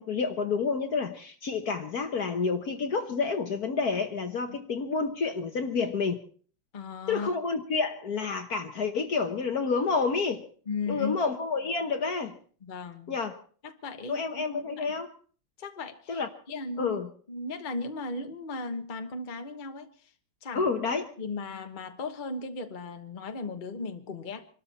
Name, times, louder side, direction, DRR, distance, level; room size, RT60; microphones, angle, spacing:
voice 1, 0.0-6.2 7.1-10.4 10.9-12.4 13.1-13.4 14.1-15.1 16.1-16.3 16.8-17.1 20.5-21.1, left 4 dB, 50° left, 1.5 m, -29 dB
voice 2, 6.7-7.3 10.7-11.2 12.6-13.1 13.6-14.9 15.6-16.2 16.5-17.0 17.3-20.1 20.4-20.7 21.2-24.5, left 3 dB, 30° left, 1.1 m, -36 dB
25.5 x 13.0 x 4.2 m
omnidirectional pair, 2.3 m